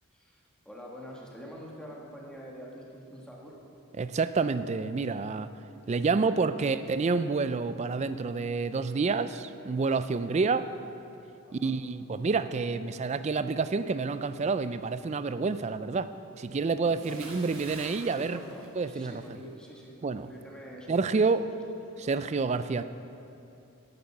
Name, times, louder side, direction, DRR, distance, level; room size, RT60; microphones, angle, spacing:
voice 1, 0.1-3.5 10.3-10.4 11.4-11.7 16.7-17.3 18.0-21.6 21.9-22.1 22.5-22.7, equal, 5° left, -3 dB, 1.5 m, -47 dB
voice 2, 4.0-5.5 5.9-10.7 11.5-16.1 16.4-18.4 18.8-19.2 20.0-20.3 20.9-21.4 22.0-22.8, right 4 dB, 30° right, 12 dB, 0.3 m, -28 dB
Bathtub (filling or washing) / Splash splatter, 17.0-19.4 19.7-20.0, right 2 dB, 75° right, 2.1 m, -47 dB
11.0 x 9.3 x 5.8 m, 2.8 s
head